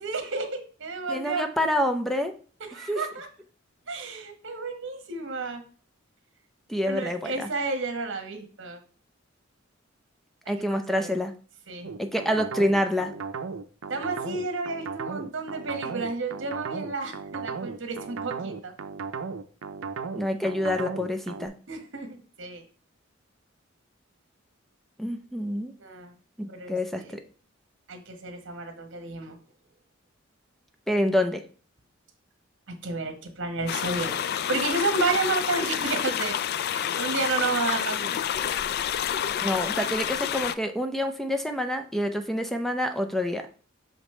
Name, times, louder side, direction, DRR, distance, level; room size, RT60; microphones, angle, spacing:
voice 1, 0.0-1.5 2.7-3.3 3.9-5.6 6.8-8.8 10.5-11.1 11.7-11.9 13.9-18.7 21.7-22.6 25.8-26.1 26.5-27.1 27.9-29.4 32.7-36.3 36.7-38.5, right 3 dB, 65° right, 5 dB, 1.2 m, -31 dB
voice 2, 1.1-2.3 2.9-3.0 6.7-7.5 10.5-11.3 12.0-13.1 20.1-21.5 25.0-25.7 26.4-27.2 30.9-31.4 39.4-43.5, left 1 dB, ahead, 7 dB, 0.6 m, -27 dB
sound 1, 11.8-21.5, right 5 dB, 90° right, 0.5 m, -35 dB
sound 2, 33.7-40.5, left 9 dB, 55° left, 0.3 m, -29 dB
6.2 x 5.1 x 3.2 m, 0.41 s
head